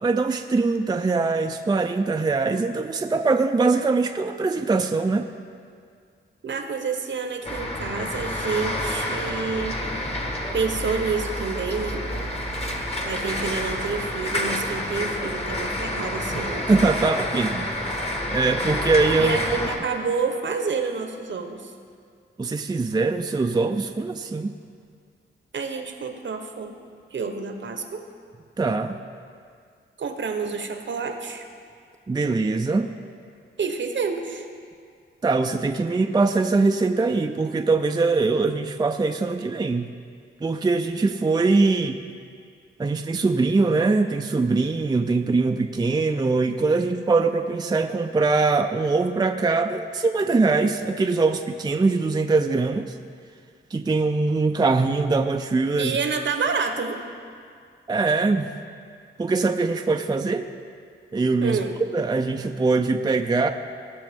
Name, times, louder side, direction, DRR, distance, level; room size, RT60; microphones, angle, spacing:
voice 1, 0.0-5.3 16.7-17.7 18.3-19.4 22.4-24.5 28.6-29.0 32.1-32.9 35.2-39.9 40.4-42.0 42.8-53.0 53.7-56.0 57.9-58.5 59.2-60.5 61.1-61.6 61.9-63.5, right 3 dB, 20° right, 5 dB, 0.4 m, -22 dB
voice 2, 6.4-9.8 10.5-12.1 13.0-16.7 19.2-21.7 25.5-26.7 27.1-28.0 30.0-31.5 33.6-34.5 55.8-57.0 61.4-61.7, right 5 dB, 60° right, 6 dB, 0.9 m, -28 dB
sound 1, 7.4-19.8, left 1 dB, 30° left, 1.3 m, -29 dB
17.0 x 6.2 x 3.5 m, 2.2 s
cardioid pair, 70°, 21 cm